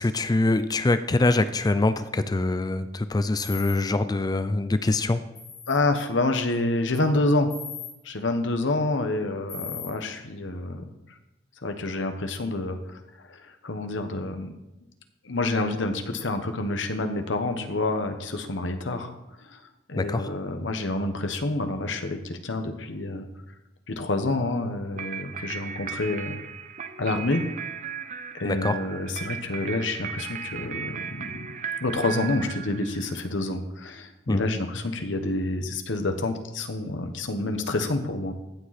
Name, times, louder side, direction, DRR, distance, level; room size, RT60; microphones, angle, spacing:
voice 1, 0.0-5.2 20.0-20.2 28.4-28.7 34.3-34.4, left 2 dB, 20° left, 12 dB, 0.4 m, -24 dB
sound 1, 3.4-3.7 5.3-5.7 7.5-7.9 9.5-9.9, left 6 dB, 50° left, 4.5 m, -38 dB
voice 2, 5.7-7.5 8.0-10.9 11.6-13.0 13.3-14.6 15.2-19.1 19.4-19.6 19.9-23.3 23.9-26.4 27.0-27.4 28.3-31.5 31.8-38.3, left 2 dB, 70° left, 7 dB, 1.1 m, -28 dB
sound 2, 25.0-33.3, right 7 dB, 40° right, 0.7 m, -36 dB
15.0 x 7.6 x 4.2 m, 0.98 s
head